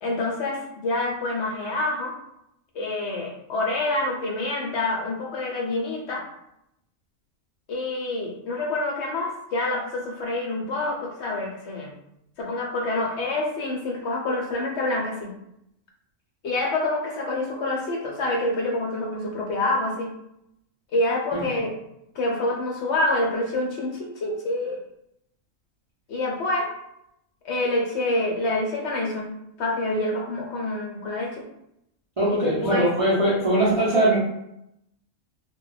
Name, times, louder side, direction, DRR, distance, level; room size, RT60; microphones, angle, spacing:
voice 1, 0.0-2.1 2.7-6.2 7.7-11.9 12.4-15.3 16.4-20.1 20.9-21.7 22.2-24.8 26.1-26.7 27.4-31.4 32.3-32.9, left 2 dB, 65° left, 0 dB, 0.8 m, -27 dB
voice 2, 32.2-34.2, right 1 dB, 45° right, -8 dB, 0.4 m, -21 dB
2.2 x 2.2 x 3.8 m, 0.80 s
omnidirectional pair, 1.4 m